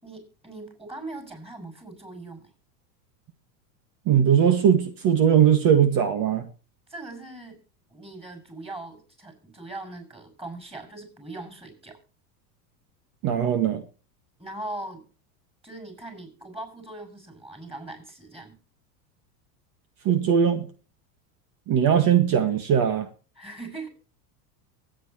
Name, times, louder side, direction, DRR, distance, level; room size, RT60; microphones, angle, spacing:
voice 1, 0.0-2.5 6.9-7.6 7.9-12.0 14.4-15.0 15.6-18.6 23.4-23.9, right 2 dB, 10° right, 7 dB, 6.4 m, -40 dB
voice 2, 4.1-6.5 13.2-13.8 20.1-20.7 21.7-23.1, right 8 dB, 45° right, 9 dB, 1.8 m, -20 dB
23.5 x 9.2 x 3.0 m, 0.36 s
hypercardioid pair, 105°, 47 cm